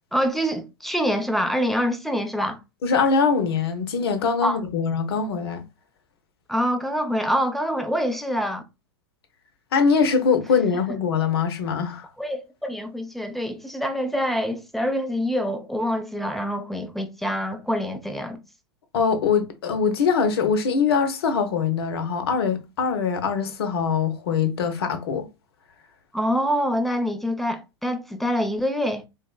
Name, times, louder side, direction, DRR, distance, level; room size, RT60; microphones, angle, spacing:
voice 1, 0.1-2.6 4.4-4.6 6.5-8.6 12.2-18.4 26.1-29.0, equal, ahead, 0.4 m, -25 dB
voice 2, 2.8-5.6 9.7-12.1 18.9-25.3, left 5 dB, 65° left, 0.6 m, -22 dB
3.6 x 2.0 x 2.3 m
hypercardioid pair, 100°, 14 cm